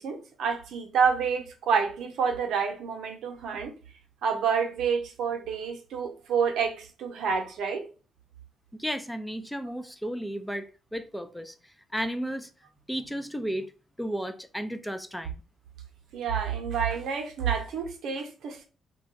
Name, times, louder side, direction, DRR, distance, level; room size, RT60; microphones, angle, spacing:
voice 1, 0.0-3.7 4.2-7.8 16.1-18.6, right 6 dB, 75° right, 0.7 m, -28 dB
voice 2, 8.7-11.5 11.9-12.5 12.9-13.7 14.0-15.3, equal, 5° left, 0.4 m, -33 dB
2.3 x 2.2 x 3.9 m
supercardioid pair, 65°, 0 cm